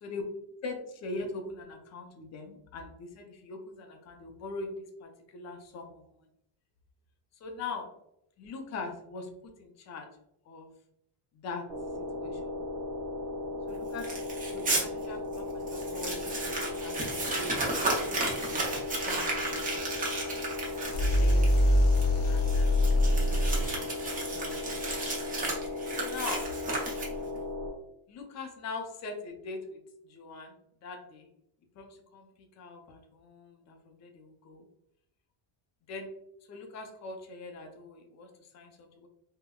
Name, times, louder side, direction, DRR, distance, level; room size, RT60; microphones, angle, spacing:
voice 1, 0.6-6.0 7.4-7.9 8.4-9.3 9.6-10.1 10.5-10.7 11.4-11.7 12.0-12.4 13.7-14.2 14.5-18.8 19.1-19.8 21.1-21.5 22.3-24.9 25.9-26.5 28.1-30.5 30.8-31.3 31.8-32.3 32.6-34.7 35.9-36.1 36.5-39.1, left 3 dB, 35° left, 4 dB, 0.5 m, -42 dB
sound 1, 11.7-27.7, left 2 dB, 50° right, 1.1 m, -37 dB
Crumpling crinkling, 14.0-14.8 15.3-15.4 15.7-27.4, right 2 dB, 20° right, 0.6 m, -34 dB
sound 2, 20.9-23.8, left 1 dB, 80° left, 0.8 m, -24 dB
3.6 x 2.1 x 2.2 m, 0.79 s
cardioid pair, 155°, 47 cm